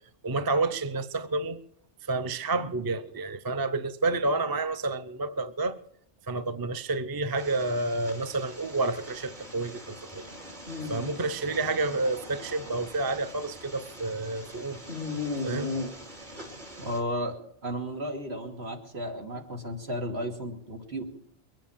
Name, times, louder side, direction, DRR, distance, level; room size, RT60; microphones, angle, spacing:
voice 1, 0.2-1.6 2.0-5.8 6.3-10.3 10.9-14.8 15.4-15.8, right 3 dB, 25° right, 0.6 m, -29 dB
sound 1, 7.4-17.0, left 2 dB, 45° right, 2.9 m, -39 dB
voice 2, 16.8-21.0, equal, 75° right, 2.9 m, -34 dB
22.0 x 9.0 x 7.3 m
omnidirectional pair, 1.1 m